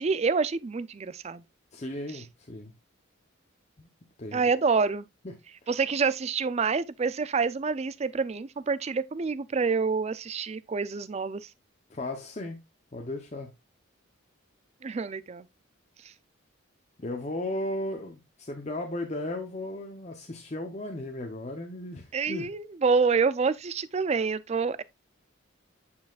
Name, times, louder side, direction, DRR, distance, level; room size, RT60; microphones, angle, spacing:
voice 1, 0.0-1.4 4.3-5.0 5.7-11.4 14.8-15.5 22.1-24.8, right 5 dB, 30° right, 0.3 m, -27 dB
voice 2, 1.7-2.7 3.8-3.9 4.2-4.4 5.2-5.3 11.9-12.6 12.9-13.5 17.0-22.5, left 1 dB, 35° left, 0.7 m, -35 dB
8.9 x 5.6 x 2.4 m
head